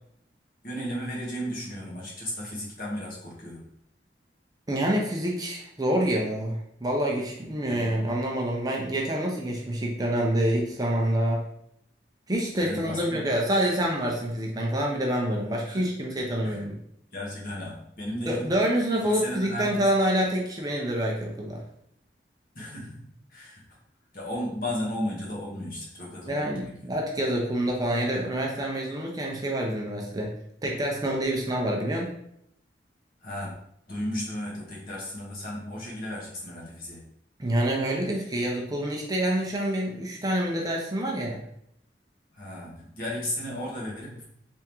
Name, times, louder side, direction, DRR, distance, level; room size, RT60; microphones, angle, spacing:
voice 1, 0.6-3.6 7.7-7.9 12.6-13.3 15.7-15.9 16.4-16.7 17.1-18.4 19.0-19.8 22.5-23.6 24.1-26.5 33.2-33.5 33.9-37.1 42.3-44.2, left 1 dB, 55° left, -4 dB, 1.3 m, -34 dB
voice 2, 4.7-11.5 12.3-16.8 18.3-21.6 26.3-30.3 30.6-32.1 37.4-41.4, right 1 dB, 20° right, -1 dB, 0.6 m, -27 dB
3.5 x 3.5 x 3.0 m, 0.73 s
head